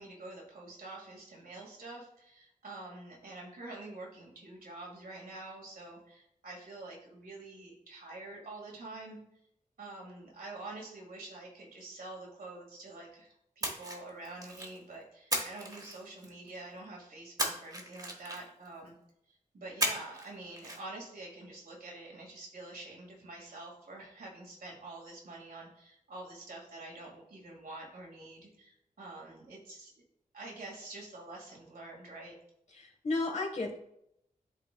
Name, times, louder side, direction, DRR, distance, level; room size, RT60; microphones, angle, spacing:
voice 1, 0.0-9.2 9.8-18.9 19.3-29.9 30.3-32.4, right 2 dB, 90° right, -1 dB, 1.8 m, -47 dB
Splash splatter, 13.6-14.8 15.3-16.5 17.4-18.7 19.8-20.3 20.6-20.8, right 1 dB, 25° right, 1.1 m, -35 dB
voice 2, 32.7-33.8, left 3 dB, 55° left, 3 dB, 1.2 m, -33 dB
11.0 x 3.9 x 2.2 m, 0.76 s
wide cardioid pair, 135°, 15 cm